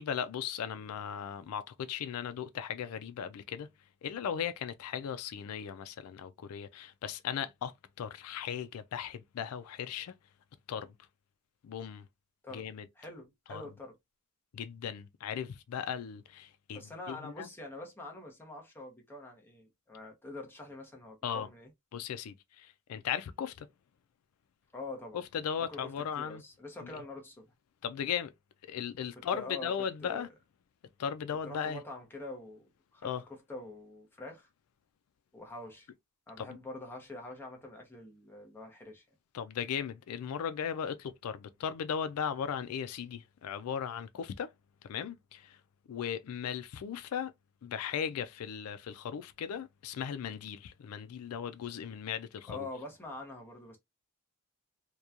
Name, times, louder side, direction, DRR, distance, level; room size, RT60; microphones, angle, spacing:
voice 1, 0.0-3.7 4.0-10.1 10.7-10.9 11.6-12.0 12.5-12.9 13.5-13.6 14.5-17.5 21.2-21.5 21.9-23.7 25.1-26.4 26.8-27.0 27.8-28.3 28.6-30.3 31.0-31.8 33.0-33.2 36.4-36.6 39.3-44.5 44.9-45.6 45.9-47.3 47.6-52.7, left 8 dB, 85° left, 0.4 m, -37 dB
voice 2, 13.0-14.0 16.7-21.7 24.7-25.2 25.6-27.5 29.3-29.7 30.0-30.3 31.4-34.5 35.3-35.9 36.3-39.0 52.5-53.8, left 2 dB, 10° left, 0.8 m, -45 dB
2.9 x 2.2 x 2.4 m
head